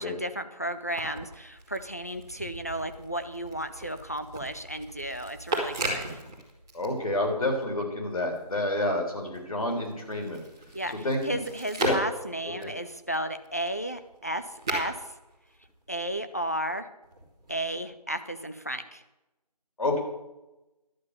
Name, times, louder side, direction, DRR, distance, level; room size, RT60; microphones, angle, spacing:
voice 1, 0.0-6.2 10.7-15.1 15.9-16.9 17.5-19.0, right 1 dB, 25° left, 9 dB, 0.5 m, -33 dB
sound 1, 0.7-7.7 8.0-16.2 17.0-17.8, right 1 dB, 5° right, 1.0 m, -38 dB
voice 2, 6.7-10.4 11.0-11.4 11.8-12.0 12.6-12.7 19.8-20.0, left 1 dB, 55° left, 2 dB, 3.4 m, -28 dB
12.0 x 7.4 x 6.6 m, 0.99 s
figure-of-eight pair, 170°, 21 cm